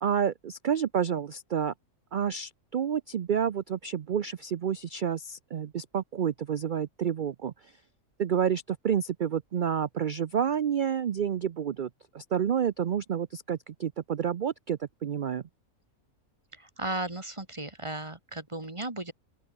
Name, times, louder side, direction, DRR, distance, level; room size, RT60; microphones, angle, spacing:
voice 1, 0.0-1.7 2.1-7.5 8.2-11.9 12.1-15.4, right 8 dB, 70° right, 0.4 m, -29 dB
voice 2, 16.5-19.1, right 1 dB, 20° right, 1.9 m, -35 dB
open air
omnidirectional pair, 1.6 m